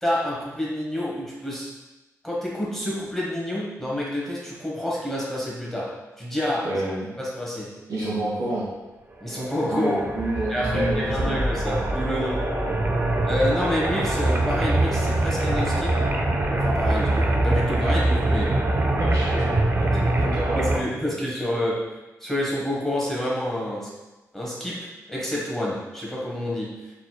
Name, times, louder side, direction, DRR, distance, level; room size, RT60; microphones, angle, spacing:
voice 1, 0.0-1.7 2.2-5.9 6.2-6.7 7.2-7.7 9.2-10.1 10.5-12.4 13.2-15.9 16.5-18.5 19.3-19.6 20.1-20.2 20.5-21.8 22.2-23.9 24.3-26.7, left 1 dB, 5° left, -5 dB, 1.4 m, -28 dB
voice 2, 6.6-7.1 7.9-8.7 9.7-11.3 12.7-12.9 18.9-19.5 20.1-20.8, right 1 dB, 90° right, -6 dB, 1.4 m, -29 dB
sound 1, 9.2-20.8, right 2 dB, 35° right, 0.5 m, -23 dB
4.3 x 4.1 x 2.3 m, 1.1 s
cardioid pair, 85°, 6 cm